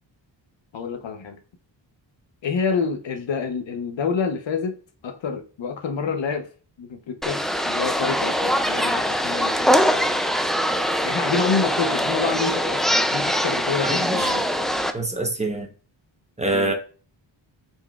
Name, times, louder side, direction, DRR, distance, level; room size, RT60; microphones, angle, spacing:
voice 1, 0.7-1.4 2.4-4.8 5.0-6.5 6.8-10.1 11.0-14.5 16.5-16.7, left 5 dB, 70° left, 0.9 m, -28 dB
sound 1, 7.2-14.9, equal, ahead, 0.3 m, -22 dB
voice 2, 13.8-14.3 14.9-15.7 16.4-16.7, right 2 dB, 15° right, 0.9 m, -25 dB
8.8 x 4.5 x 2.4 m
wide cardioid pair, 130°, 46 cm